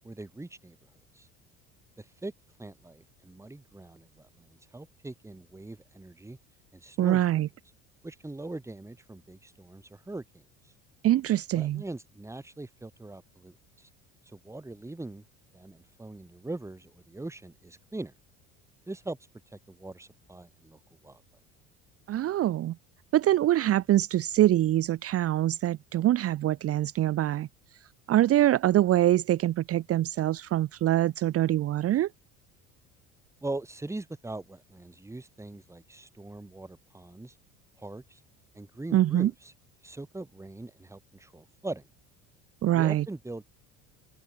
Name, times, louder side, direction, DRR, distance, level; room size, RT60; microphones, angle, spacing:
voice 1, 0.0-0.8 1.1-1.3 2.0-2.3 2.6-6.4 6.7-7.4 8.0-10.4 11.5-13.9 14.3-15.2 15.5-18.1 18.9-19.2 19.5-21.2 33.4-37.3 37.8-38.2 38.5-39.5 39.8-41.9 42.7-43.4, right 2 dB, 10° right, 1.7 m, -41 dB
voice 2, 7.0-7.5 11.0-11.8 22.1-22.8 23.1-27.5 28.1-32.1 38.9-39.3 42.6-43.0, right 13 dB, 45° right, 0.8 m, -24 dB
supercardioid pair, 90°, 34 cm